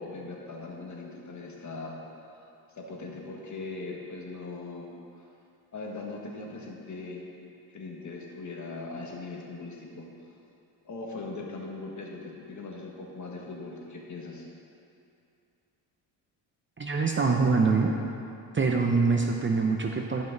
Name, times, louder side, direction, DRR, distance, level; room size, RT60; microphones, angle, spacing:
voice 1, 0.0-2.0 2.2-2.4 2.7-4.9 5.2-5.3 5.7-7.2 7.7-10.3 10.8-14.5, left 3 dB, 40° left, -1 dB, 1.7 m, -40 dB
voice 2, 16.8-17.9 18.5-20.2, right 4 dB, 25° right, 2 dB, 0.7 m, -24 dB
13.5 x 5.4 x 3.9 m, 2.6 s
cardioid pair, 90°, 45 cm